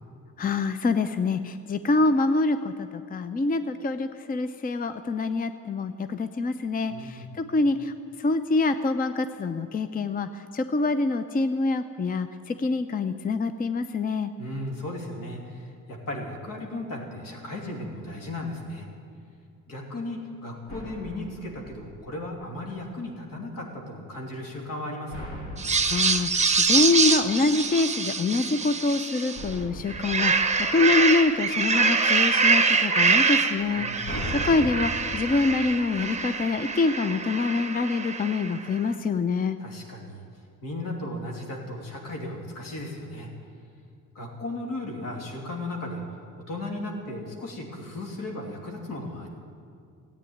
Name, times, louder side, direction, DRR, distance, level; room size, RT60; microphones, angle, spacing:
voice 1, 0.4-7.9 8.2-14.3 25.9-34.2 34.4-39.6, left 3 dB, 25° left, 10 dB, 0.6 m, -25 dB
voice 2, 6.9-7.3 14.4-18.9 19.7-25.4 33.7-34.2 39.6-40.2 40.6-43.3 44.1-46.0 46.5-49.3, left 1 dB, 75° left, 0 dB, 3.0 m, -36 dB
sound 1, 20.7-22.6 25.1-27.5 29.4-31.6 33.6-36.6, equal, 60° left, 2.5 m, -39 dB
sound 2, 25.6-29.5 29.9-38.6, right 4 dB, 20° right, 0.9 m, -25 dB
15.0 x 8.9 x 9.3 m, 2.4 s
cardioid pair, 85°, 33 cm